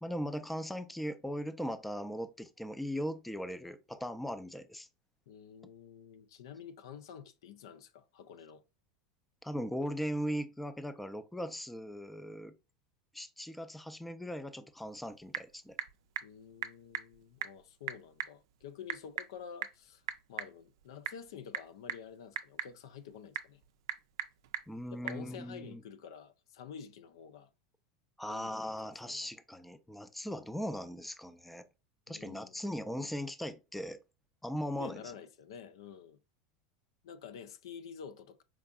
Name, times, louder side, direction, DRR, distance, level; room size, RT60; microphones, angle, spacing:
voice 1, 0.0-4.9 9.4-12.5 13.1-15.8 24.7-25.8 28.2-31.7 32.1-34.0 34.4-35.0, equal, 5° left, 0.4 m, -39 dB
voice 2, 5.3-8.6 16.2-20.0 20.3-23.6 24.9-27.5 28.3-28.7 29.0-29.3 32.1-32.8 34.8-36.2 37.0-38.4, left 7 dB, 80° left, 0.4 m, -49 dB
Typing / Telephone, 14.8-25.3, right 11 dB, 75° right, 0.4 m, -43 dB
4.6 x 2.5 x 2.3 m
hypercardioid pair, 110°, 2 cm